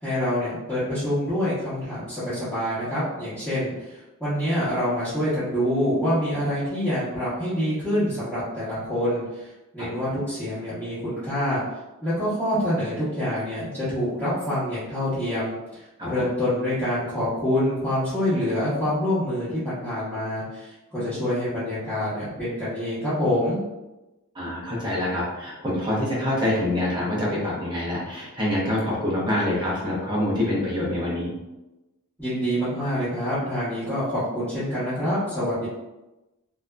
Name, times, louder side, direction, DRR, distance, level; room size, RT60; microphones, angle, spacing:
voice 1, 0.0-11.6 12.0-23.6 32.2-35.7, equal, 5° left, -17 dB, 1.2 m, -26 dB
voice 2, 24.3-31.3, left 1 dB, 20° right, -6 dB, 0.8 m, -26 dB
2.8 x 2.5 x 2.2 m, 1.0 s
head